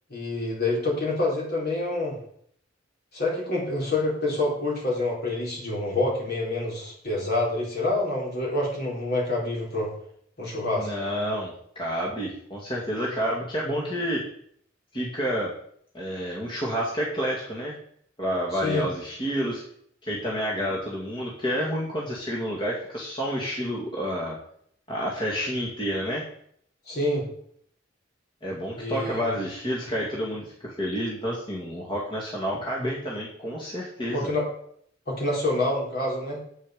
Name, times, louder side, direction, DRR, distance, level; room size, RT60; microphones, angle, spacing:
voice 1, 0.1-2.2 3.1-9.9 10.4-10.9 18.5-18.8 26.9-27.3 28.8-29.3 34.1-34.5 35.1-36.4, left 2 dB, 55° left, -3 dB, 4.4 m, -27 dB
voice 2, 10.8-14.2 14.9-15.5 15.9-17.8 18.2-19.6 20.0-24.4 24.9-26.2 28.4-34.3, equal, 25° left, -3 dB, 2.1 m, -29 dB
9.6 x 8.2 x 5.2 m, 0.64 s
head